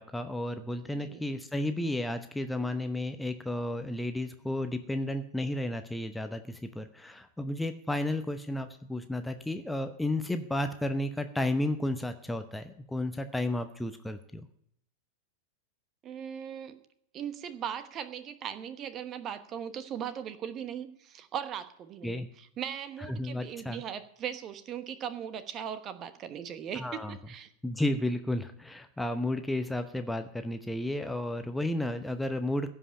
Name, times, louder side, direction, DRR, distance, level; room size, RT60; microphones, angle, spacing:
voice 1, 0.0-14.5 22.0-22.3 23.1-23.8 26.8-27.2 27.6-32.7, left 1 dB, 5° left, 8 dB, 0.8 m, -32 dB
voice 2, 0.9-1.3 16.0-16.8 17.1-27.5, right 9 dB, 30° right, 12 dB, 1.1 m, -39 dB
16.0 x 5.6 x 9.9 m, 0.72 s
figure-of-eight pair, 90°, 0 cm